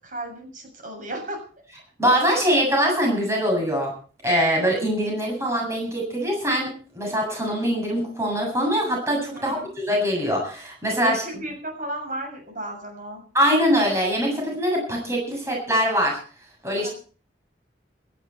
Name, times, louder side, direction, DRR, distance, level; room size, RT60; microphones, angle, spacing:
voice 1, 0.0-1.4 2.3-2.4 9.3-9.8 11.0-13.2 16.8-16.9, right 1 dB, 45° right, 3 dB, 7.3 m, -34 dB
voice 2, 2.0-3.9 4.2-11.2 13.3-16.2 16.6-16.9, equal, 15° right, -1 dB, 7.6 m, -23 dB
17.5 x 14.0 x 4.5 m, 0.41 s
head